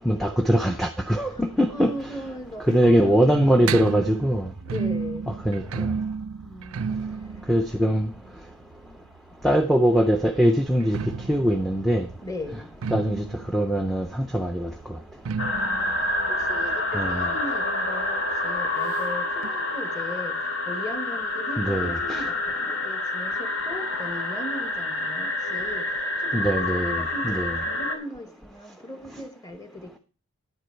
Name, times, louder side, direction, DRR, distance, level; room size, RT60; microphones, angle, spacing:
voice 1, 0.1-1.9 2.7-4.5 5.3-5.9 7.5-8.1 9.4-11.0 11.3-12.1 12.9-13.2 13.5-14.7 16.9-17.3 21.6-22.2 26.3-27.6, equal, ahead, 0.5 m, -22 dB
voice 2, 1.3-3.9 4.6-5.3 6.4-7.0 12.2-12.7 15.5-30.0, left 1 dB, 15° left, 1.3 m, -38 dB
Metallic bass perc, 1.8-9.5 10.7-18.0 18.3-18.4 18.7-18.8 19.4-19.5, right 5 dB, 85° right, 0.4 m, -34 dB
sound 1, 15.4-28.0, left 2 dB, 75° left, 1.8 m, -28 dB
10.0 x 8.1 x 4.5 m
head